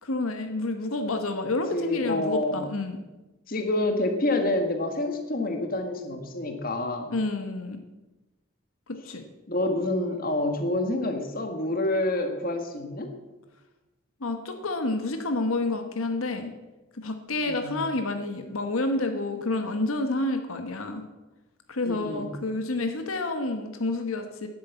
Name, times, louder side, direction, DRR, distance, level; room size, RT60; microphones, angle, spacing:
voice 1, 0.0-3.0 7.1-7.8 8.9-9.2 14.2-16.5 16.9-21.0 21.7-24.5, left 2 dB, 80° left, 6 dB, 1.2 m, -29 dB
voice 2, 1.7-2.6 3.5-7.1 9.5-13.1 17.4-17.8 21.8-22.3, left 2 dB, 40° left, 5 dB, 1.6 m, -27 dB
11.0 x 8.1 x 8.1 m, 1.1 s
head